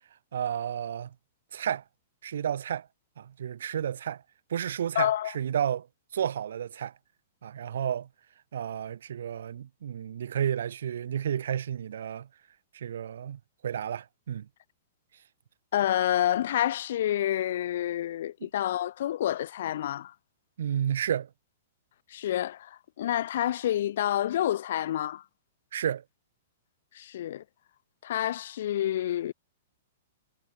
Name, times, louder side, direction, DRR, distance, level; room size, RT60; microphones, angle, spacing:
voice 1, 0.3-1.1 1.5-1.8 2.2-2.9 3.2-4.2 4.5-5.9 6.1-6.9 7.4-8.1 8.5-12.3 12.7-14.5 20.6-21.3 25.7-26.0, right 9 dB, 70° right, 3.5 m, -31 dB
voice 2, 4.9-5.3 15.7-20.1 22.1-25.2 26.9-27.4 28.0-29.3, left 12 dB, 65° left, 2.3 m, -28 dB
hypercardioid pair, 120°, 0 cm